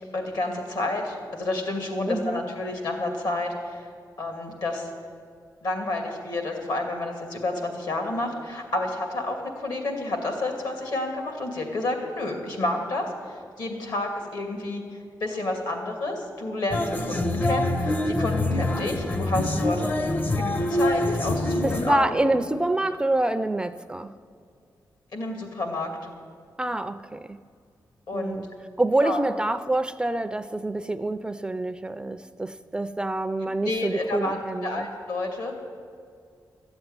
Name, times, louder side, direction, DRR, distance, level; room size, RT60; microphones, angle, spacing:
voice 1, 0.1-3.8 4.2-4.9 5.6-20.0 20.4-22.4 25.1-25.9 28.1-28.4 29.0-29.2 33.6-35.5, left 2 dB, 70° left, 3 dB, 2.6 m, -30 dB
voice 2, 2.1-2.4 21.6-24.1 26.6-27.4 28.1-28.5 28.8-34.9, right 2 dB, 10° right, 11 dB, 0.4 m, -26 dB
sound 1, 16.7-21.9, left 1 dB, 25° left, 0.6 m, -25 dB
14.0 x 7.9 x 9.6 m, 2.2 s
wide cardioid pair, 140°, 7 cm